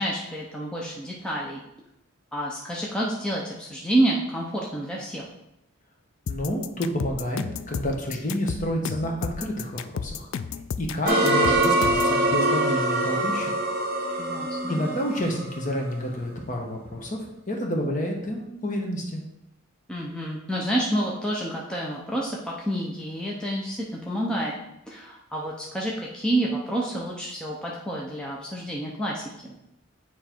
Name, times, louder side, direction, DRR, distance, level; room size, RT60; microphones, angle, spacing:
voice 1, 0.0-1.6 2.3-5.2 14.2-14.8 19.9-24.5 24.9-29.5, right 1 dB, 5° left, -4 dB, 0.7 m, -29 dB
sound 1, 6.3-12.2, left 6 dB, 65° left, 0.3 m, -32 dB
voice 2, 6.3-10.3 10.8-13.5 14.7-17.2 17.5-19.2, equal, 35° left, 0 dB, 1.1 m, -29 dB
sound 2, 11.1-16.1, right 1 dB, 45° right, 0.9 m, -24 dB
9.2 x 3.2 x 4.4 m, 0.86 s
head